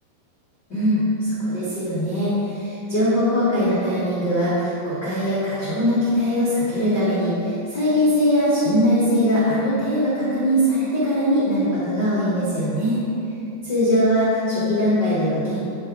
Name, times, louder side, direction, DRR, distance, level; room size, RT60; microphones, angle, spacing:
voice 1, 0.7-13.0 13.6-15.6, equal, 50° left, -12 dB, 1.3 m, -21 dB
10.0 x 4.0 x 4.8 m, 2.8 s
omnidirectional pair, 5.2 m